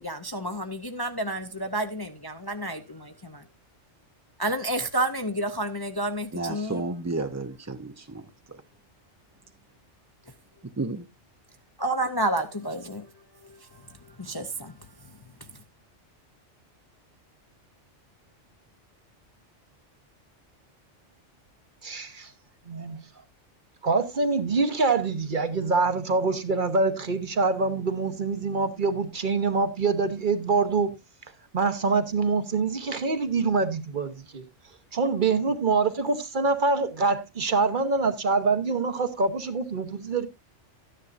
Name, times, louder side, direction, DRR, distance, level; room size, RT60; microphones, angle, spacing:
voice 1, 0.0-3.4 4.4-6.8 11.8-13.1 13.4-13.8 14.2-14.7, right 1 dB, 25° left, 0.5 m, -30 dB
voice 2, 6.3-8.2 10.8-11.1, right 3 dB, 25° right, 0.4 m, -32 dB
voice 3, 21.8-22.3 22.7-23.0 23.8-31.0 31.5-34.5 34.9-40.3, right 4 dB, 45° right, 1.0 m, -25 dB
13.0 x 10.0 x 2.5 m
omnidirectional pair, 1.2 m